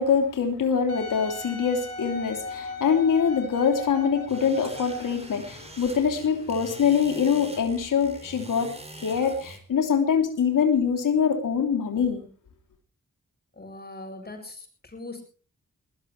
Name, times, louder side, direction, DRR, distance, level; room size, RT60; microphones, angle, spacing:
voice 1, 0.0-8.7 9.0-12.2, left 6 dB, 90° left, 3.2 m, -24 dB
Wind instrument woodwind instrument, 0.9-5.2 5.9-6.0, left 2 dB, 55° left, 7.2 m, -37 dB
sound 1, 4.3-9.6, right 1 dB, 20° right, 4.4 m, -44 dB
voice 2, 13.6-15.2, left 2 dB, 30° left, 7.4 m, -40 dB
21.0 x 19.0 x 3.3 m
wide cardioid pair, 95°, 31 cm